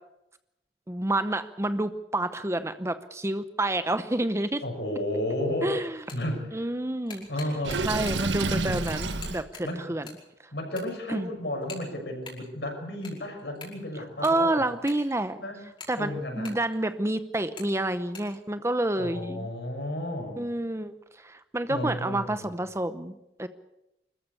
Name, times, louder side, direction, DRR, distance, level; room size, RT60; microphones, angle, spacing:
voice 1, 0.9-4.6 5.6-6.0 6.5-7.3 7.8-10.1 11.1-11.3 14.2-15.4 15.9-19.5 20.4-20.9 21.2-23.5, right 1 dB, 15° right, 11 dB, 0.8 m, -29 dB
voice 2, 4.6-5.7 6.1-6.7 7.3-7.9 9.6-9.9 10.5-14.6 15.4-15.6 16.0-16.5 19.0-20.5 21.7-22.5, left 1 dB, 65° left, 3 dB, 6.3 m, -33 dB
sound 1, 6.0-6.4 6.8-8.3 8.6-10.2 10.5-11.1 11.6-12.5 12.8-15.3 15.7-17.0 17.5-17.7 18.0-18.4, left 4 dB, 30° left, 5.4 m, -45 dB
Water / Sink (filling or washing), 7.6-9.4, right 3 dB, 90° right, 1.6 m, -29 dB
25.5 x 14.5 x 8.3 m, 0.89 s
head